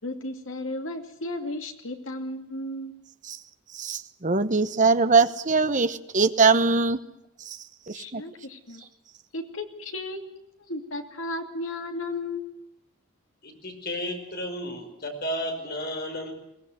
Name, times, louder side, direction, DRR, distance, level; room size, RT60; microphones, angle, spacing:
voice 1, 0.0-2.9 7.9-8.8 9.3-12.5, left 2 dB, 60° left, 4 dB, 2.7 m, -34 dB
voice 2, 3.8-7.0 7.9-8.2, right 4 dB, 35° right, 11 dB, 1.0 m, -22 dB
voice 3, 13.4-16.3, equal, 45° left, 3 dB, 5.1 m, -33 dB
22.5 x 18.5 x 8.0 m, 0.87 s
head